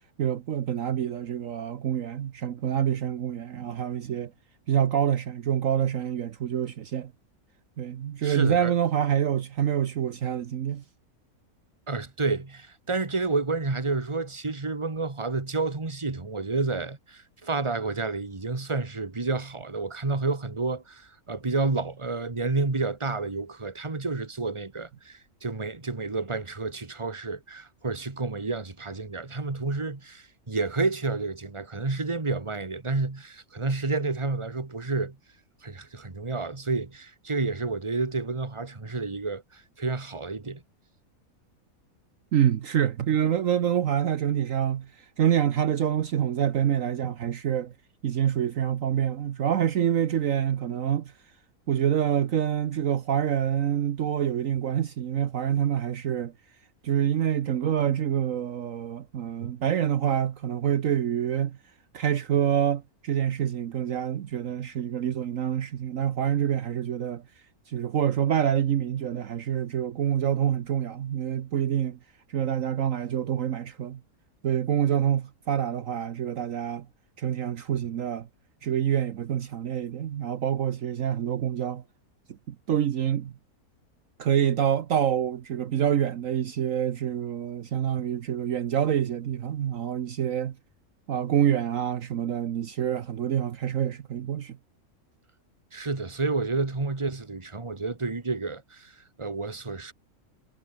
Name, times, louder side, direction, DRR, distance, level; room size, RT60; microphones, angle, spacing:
voice 1, 0.2-4.3 4.7-7.1 7.8-10.8 42.3-47.7 48.0-51.1 51.7-56.3 56.8-61.6 61.9-67.2 67.7-72.0 72.3-74.0 74.4-76.9 77.2-78.3 78.6-81.8 82.5-83.3 84.2-90.5 91.1-94.6, right 9 dB, 65° right, 1.2 m, -26 dB
voice 2, 8.2-8.7 11.9-35.2 35.6-40.6 95.7-99.9, right 3 dB, 20° right, 1.7 m, -30 dB
omnidirectional pair, 1.6 m